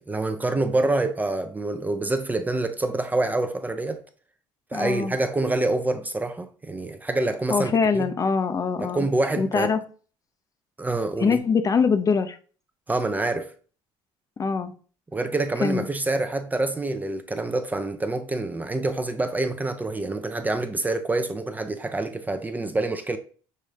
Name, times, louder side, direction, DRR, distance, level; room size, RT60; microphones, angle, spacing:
voice 1, 0.0-4.0 4.7-8.1 8.8-9.7 10.8-11.4 12.9-13.5 15.1-23.2, right 2 dB, 15° right, 0.5 m, -26 dB
voice 2, 4.7-5.1 7.5-9.1 9.4-9.8 11.2-12.4 14.4-14.7 15.6-15.9, left 5 dB, 30° left, 0.6 m, -23 dB
6.5 x 2.5 x 3.2 m
supercardioid pair, 95°, 11 cm